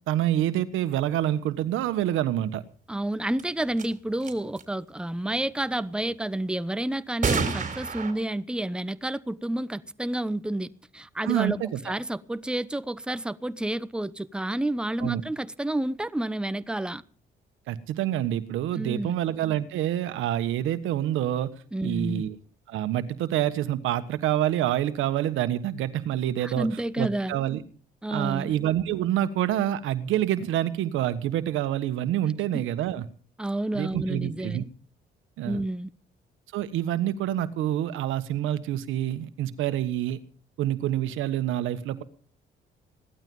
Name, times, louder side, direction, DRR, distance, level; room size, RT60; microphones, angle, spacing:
voice 1, 0.1-2.6 11.2-11.8 15.0-15.2 17.7-21.5 21.8-22.4 22.7-26.7 27.0-27.6 28.1-33.0 33.7-34.6 35.4-35.6 36.5-40.2 40.6-42.0, right 12 dB, 90° right, 1.4 m, -27 dB
voice 2, 2.9-11.6 11.8-17.0 18.7-19.1 21.7-22.3 26.4-27.4 28.0-28.5 32.5-32.6 33.4-34.7 35.4-35.9, right 1 dB, 5° right, 0.9 m, -30 dB
sound 1, 3.4-3.5 3.8-3.9 4.2-4.6 7.2-8.1, right 5 dB, 40° right, 3.6 m, -27 dB
17.0 x 12.5 x 5.5 m
cardioid pair, 90°, 20 cm